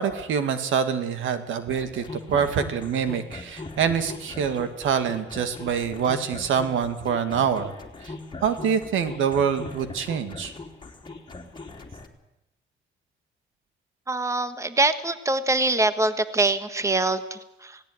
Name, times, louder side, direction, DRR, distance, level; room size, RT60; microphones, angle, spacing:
voice 1, 0.0-7.7 8.0-8.1 8.4-10.5, right 7 dB, 80° right, 9 dB, 2.1 m, -25 dB
sound 1, 1.7-12.1, left 3 dB, 25° left, 3.0 m, -40 dB
voice 2, 14.1-17.8, right 2 dB, 15° right, 11 dB, 1.4 m, -24 dB
17.5 x 17.5 x 9.3 m, 0.91 s
cardioid pair, 90°, 20 cm